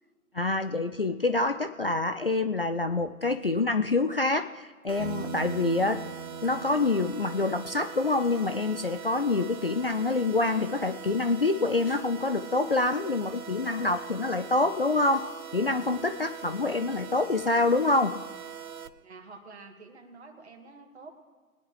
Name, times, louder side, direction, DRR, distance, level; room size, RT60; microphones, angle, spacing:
voice 1, 0.3-6.0 6.4-18.2, left 3 dB, 45° left, 8 dB, 0.4 m, -26 dB
sound 1, 4.9-18.9, right 7 dB, 75° right, 1.0 m, -42 dB
Piano, 5.0-8.7, right 4 dB, 5° left, 2.1 m, -42 dB
voice 2, 19.0-21.1, right 3 dB, 50° right, 3 dB, 2.2 m, -48 dB
22.0 x 10.0 x 3.2 m, 1.4 s
figure-of-eight pair, 150°, 43 cm